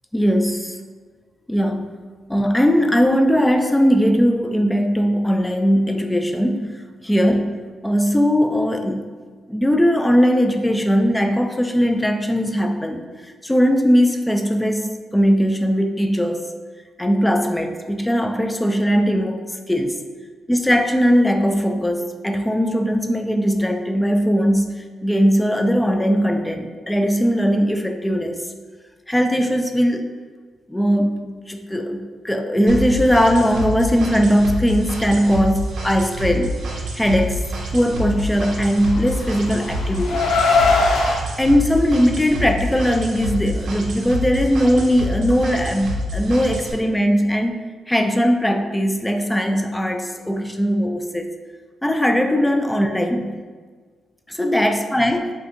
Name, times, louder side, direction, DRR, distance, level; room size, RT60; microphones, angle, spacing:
voice 1, 0.1-0.8 1.5-1.9 2.3-9.1 9.5-16.5 17.0-20.1 20.5-28.4 29.1-30.1 30.7-36.6 36.9-40.3 40.7-40.8 41.4-51.3 51.8-53.4 54.3-55.3, equal, 10° left, 5 dB, 0.3 m, -19 dB
sound 1, 32.7-46.7, equal, 70° right, 0.5 m, -27 dB
Car, 38.7-41.2, left 3 dB, 75° left, 0.4 m, -20 dB
2.6 x 2.4 x 3.5 m, 1.5 s
cardioid pair, 70°, 0 cm